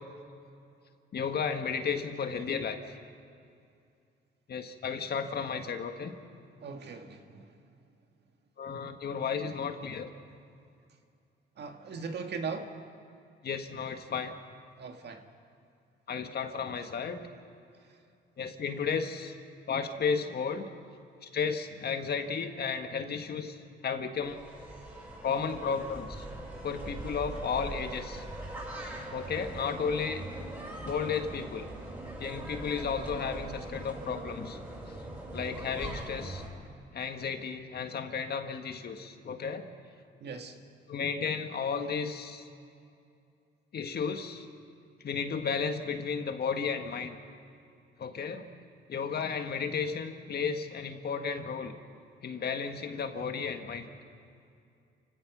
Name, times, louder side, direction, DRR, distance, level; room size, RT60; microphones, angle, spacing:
voice 1, 1.1-3.0 4.5-6.1 8.6-10.1 13.4-14.3 16.1-17.2 18.4-19.3 19.7-20.7 21.2-23.6 23.8-24.4 25.2-26.2 26.6-28.2 29.1-30.2 30.8-31.7 32.2-34.6 35.3-36.4 36.9-39.7 40.9-42.5 43.7-44.5 45.0-47.2 48.0-48.5 48.9-51.7 52.2-53.9, left 6 dB, 55° left, 6 dB, 1.7 m, -33 dB
voice 2, 6.6-7.5 11.6-12.7 14.8-15.2 40.2-40.6, right 5 dB, 55° right, 5 dB, 1.9 m, -39 dB
sound 1, 24.2-36.5, right 1 dB, 10° right, 6.8 m, -41 dB
29.0 x 16.5 x 6.2 m, 2.4 s
cardioid pair, 90°, 20 cm